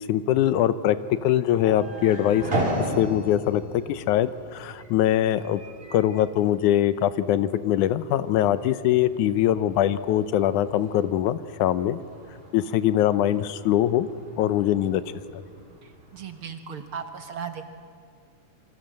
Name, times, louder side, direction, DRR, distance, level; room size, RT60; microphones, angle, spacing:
voice 1, 0.1-2.7 3.0-3.6 3.9-5.6 5.9-12.0 12.5-14.1 14.4-15.0 15.3-15.4, left 11 dB, 90° left, 14 dB, 2.3 m, -22 dB
sound 1, 1.1-16.5, right 1 dB, 20° right, 3.4 m, -37 dB
voice 2, 16.1-17.6, right 6 dB, 55° right, 7 dB, 1.8 m, -36 dB
27.5 x 23.5 x 7.7 m, 2.1 s
omnidirectional pair, 3.4 m